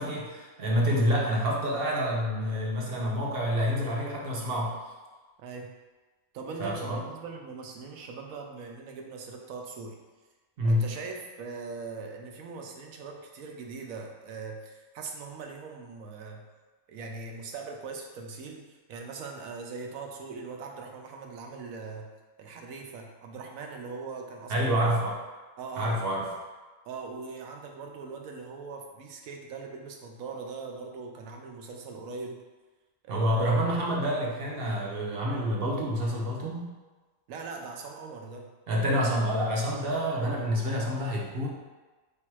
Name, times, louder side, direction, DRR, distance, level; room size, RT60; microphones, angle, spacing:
voice 1, 0.0-4.8 6.6-7.0 10.6-10.9 24.5-25.2 25.8-26.3 33.1-36.7 38.7-41.5, equal, 50° right, -2 dB, 0.9 m, -27 dB
voice 2, 5.4-5.7 6.3-10.0 10.7-16.5 16.9-18.6 18.9-22.1 22.4-24.7 25.6-26.0 26.9-32.4 33.0-33.6 37.3-38.5, right 4 dB, 85° right, 2 dB, 1.0 m, -41 dB
3.4 x 2.7 x 4.6 m, 1.3 s
omnidirectional pair, 1.4 m